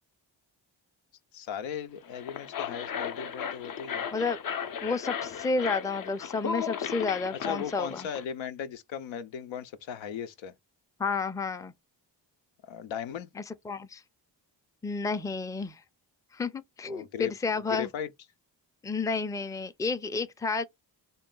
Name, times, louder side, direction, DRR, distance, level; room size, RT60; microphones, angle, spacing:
voice 1, 1.3-4.1 7.4-10.5 12.6-13.3 16.8-17.3 17.7-18.1, left 8 dB, 85° left, 0.6 m, -37 dB
sound 1, 2.0-8.2, left 7 dB, 50° left, 0.6 m, -36 dB
voice 2, 4.8-8.1 11.0-11.7 13.4-14.0 14.8-15.8 16.3-17.9 18.8-20.6, left 4 dB, 10° left, 0.4 m, -31 dB
3.8 x 2.2 x 3.7 m
cardioid pair, 60°, 45 cm